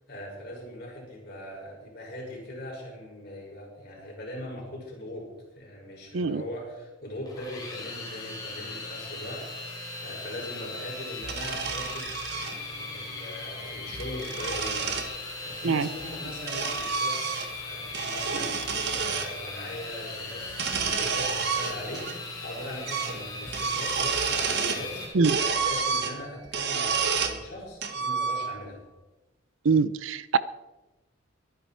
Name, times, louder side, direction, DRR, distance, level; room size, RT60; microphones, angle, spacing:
voice 1, 0.1-5.3 5.5-18.6 18.9-28.8, left 1 dB, 50° left, -3 dB, 6.2 m, -40 dB
sound 1, 7.3-25.1, left 2 dB, 20° left, 3.4 m, -38 dB
sound 2, 11.2-12.5 13.8-15.1 16.0-17.6 17.9-19.3 20.5-22.1 22.4-22.5 22.9-23.2 23.5-24.9 25.2-27.4 27.8-28.8, right 5 dB, 55° right, 1.5 m, -29 dB
voice 2, 29.6-30.4, right 4 dB, 75° right, 16 dB, 0.6 m, -23 dB
23.0 x 9.6 x 4.5 m, 1.1 s
head